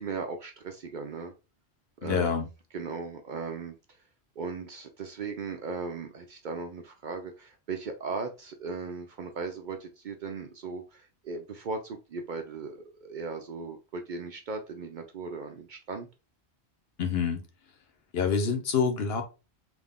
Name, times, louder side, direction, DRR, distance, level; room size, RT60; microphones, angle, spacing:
voice 1, 0.0-1.3 2.0-2.4 2.7-3.7 4.4-16.1, right 4 dB, 60° right, 5 dB, 0.6 m, -37 dB
voice 2, 2.0-2.5 17.0-17.4 18.1-19.2, left 6 dB, 65° left, 5 dB, 1.0 m, -26 dB
3.7 x 2.5 x 3.5 m, 0.30 s
omnidirectional pair, 1.1 m